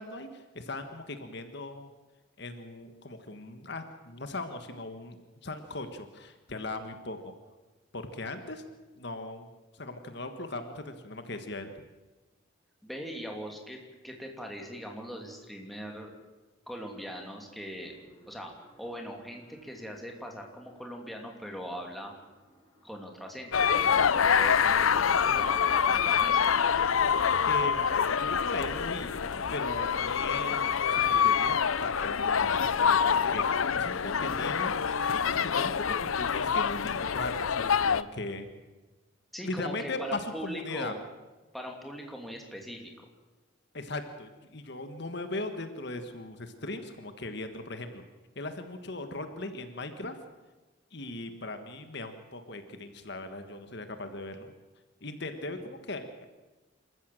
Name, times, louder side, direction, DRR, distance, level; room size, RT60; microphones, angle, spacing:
voice 1, 0.0-1.9 2.4-7.3 7.9-8.6 9.0-9.5 9.7-11.7 27.4-27.8 28.2-29.1 29.5-38.5 39.4-40.9 43.7-48.0 48.3-50.2 50.9-54.5 55.0-56.2, left 2 dB, 55° left, 8 dB, 1.6 m, -38 dB
voice 2, 12.8-16.1 16.7-18.0 18.3-22.2 22.8-26.4 39.3-41.0 41.5-42.9, equal, ahead, 1 dB, 2.8 m, -41 dB
sound 1, 17.8-34.7, equal, 25° left, 4.2 m, -56 dB
sound 2, 23.5-38.0, left 7 dB, 90° left, 0.6 m, -26 dB
27.0 x 14.0 x 7.7 m, 1.2 s
head